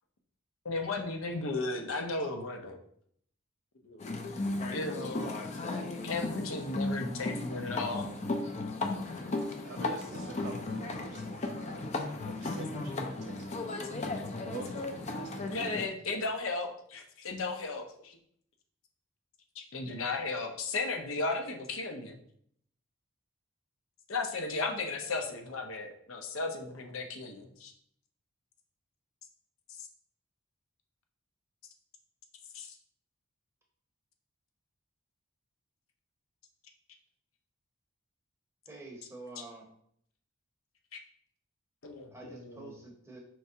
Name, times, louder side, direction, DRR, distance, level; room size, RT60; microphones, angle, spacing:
voice 1, 0.6-2.8 3.8-4.2 4.7-5.4 6.0-8.1 13.6-14.0 15.5-18.2 19.6-22.2 24.1-27.7 29.8-29.9 32.5-32.7 40.9-41.0 41.8-42.7, left 3 dB, 75° left, 4 dB, 0.7 m, -35 dB
sound 1, 4.0-15.9, left 2 dB, 30° left, 0.4 m, -35 dB
voice 2, 9.6-12.0 12.2-14.1 14.4-15.6, right 4 dB, 50° right, 3 dB, 0.3 m, -47 dB
voice 3, 38.7-39.7 42.1-43.2, right 2 dB, 10° right, 0 dB, 0.8 m, -47 dB
4.6 x 3.2 x 2.8 m, 0.65 s
head